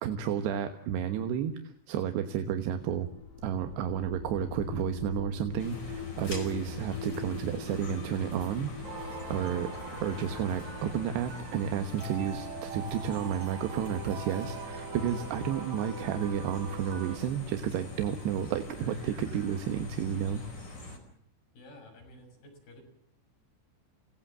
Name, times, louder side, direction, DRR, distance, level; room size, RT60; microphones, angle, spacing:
voice 1, 0.0-3.1 3.4-8.7 9.3-9.7 10.0-20.4, right 9 dB, 70° right, 7 dB, 3.2 m, -31 dB
sound 1, 2.7-14.5, left 6 dB, 70° left, 3.9 m, -44 dB
sound 2, 5.6-21.0, left 1 dB, 25° left, 4.8 m, -43 dB
sound 3, 8.8-17.2, right 5 dB, 40° right, 4.0 m, -43 dB
voice 2, 21.5-22.8, left 1 dB, 55° left, 3 dB, 8.6 m, -52 dB
29.0 x 18.0 x 7.5 m, 0.67 s
omnidirectional pair, 5.5 m